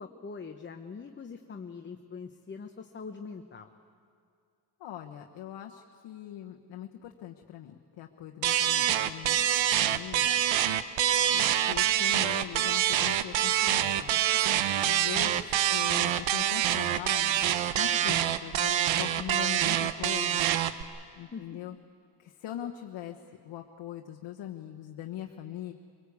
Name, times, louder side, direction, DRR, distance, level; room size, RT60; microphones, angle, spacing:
voice 1, 0.0-3.7 11.4-11.6 21.3-21.4, left 5 dB, 25° left, 5 dB, 0.9 m, -43 dB
voice 2, 4.8-9.4 9.8-10.4 11.3-14.2 14.8-17.5 17.7-20.5 21.2-21.7 22.2-23.2 23.4-25.7, left 11 dB, 70° left, 2 dB, 1.2 m, -41 dB
sound 1, 8.4-18.4, right 3 dB, 35° right, 2.7 m, -62 dB
sound 2, 8.4-20.8, right 11 dB, 90° right, 0.9 m, -26 dB
24.5 x 18.0 x 8.4 m, 2.3 s
cardioid pair, 125°, 45 cm